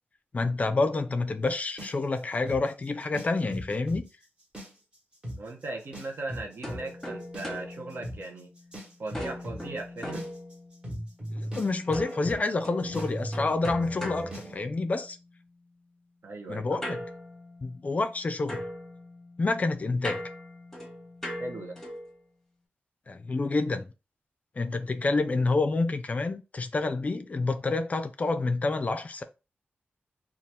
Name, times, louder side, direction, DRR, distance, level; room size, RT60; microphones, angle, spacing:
voice 1, 0.3-4.1 11.3-15.2 16.5-17.0 17.6-18.6 19.4-20.2 23.1-23.8 24.6-29.2, left 3 dB, 40° left, 0.4 m, -28 dB
sound 1, 1.8-4.0 4.4-5.0 5.2-5.4 5.9-14.5, equal, 25° right, 1.2 m, -38 dB
voice 2, 5.4-8.5 9.0-10.3 16.2-16.8 21.4-21.8, right 2 dB, 65° right, 0.7 m, -38 dB
sound 2, 6.6-8.7 9.1-11.0 11.9-15.2 16.8-18.2 18.5-22.2, equal, 5° left, 1.0 m, -40 dB
2.8 x 2.3 x 3.3 m
wide cardioid pair, 120°, 4 cm